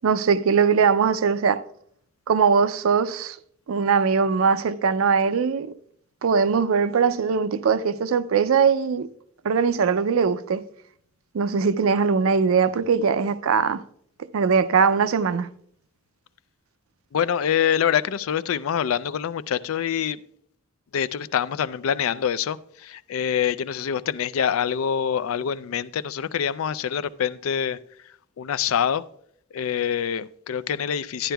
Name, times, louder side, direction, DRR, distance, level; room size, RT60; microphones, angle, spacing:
voice 1, 0.0-1.6 2.3-3.4 3.7-5.7 6.2-9.1 9.4-10.6 11.3-13.8 14.3-15.5, right 5 dB, 80° right, 0.4 m, -21 dB
voice 2, 17.1-20.2 20.9-27.8 28.4-29.0 29.5-31.3, left 8 dB, 90° left, 0.4 m, -25 dB
12.0 x 10.0 x 2.3 m
head